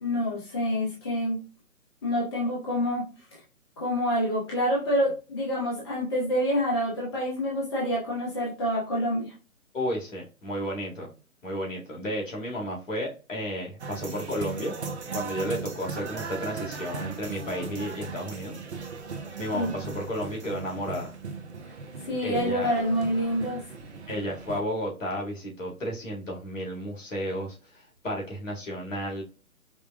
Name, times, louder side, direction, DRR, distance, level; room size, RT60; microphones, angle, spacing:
voice 1, 0.0-1.4 2.0-3.0 3.8-9.3 19.5-19.7 22.1-23.6, equal, 20° left, -5 dB, 0.7 m, -27 dB
voice 2, 9.7-11.1 11.4-14.7 15.1-18.5 19.4-21.1 22.2-22.7 24.1-29.2, equal, 60° left, -2 dB, 1.9 m, -32 dB
sound 1, 13.8-24.6, right 5 dB, 50° right, 0.7 m, -38 dB
5.0 x 2.3 x 2.3 m, 0.32 s
figure-of-eight pair, 140°, 43 cm